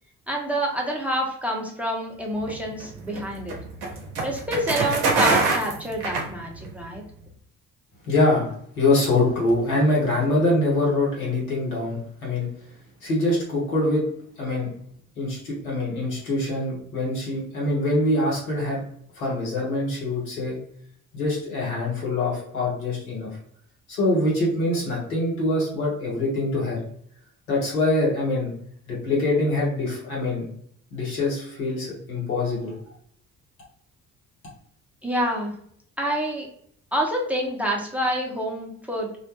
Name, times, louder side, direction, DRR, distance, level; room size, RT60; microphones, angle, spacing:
voice 1, 0.3-3.6 4.2-7.0 35.0-35.5 36.0-36.5 36.9-39.1, equal, 5° right, -1 dB, 0.7 m, -27 dB
sound 1, 2.4-6.9, right 3 dB, 75° right, 0.7 m, -25 dB
voice 2, 8.1-12.5 13.0-14.1 14.4-14.7 15.2-18.8 19.2-20.6 21.1-23.4 23.9-26.9 27.5-28.5 28.9-30.5 30.9-32.8, left 2 dB, 90° left, -4 dB, 0.8 m, -24 dB
2.3 x 2.1 x 2.8 m, 0.66 s
hypercardioid pair, 45°, 41 cm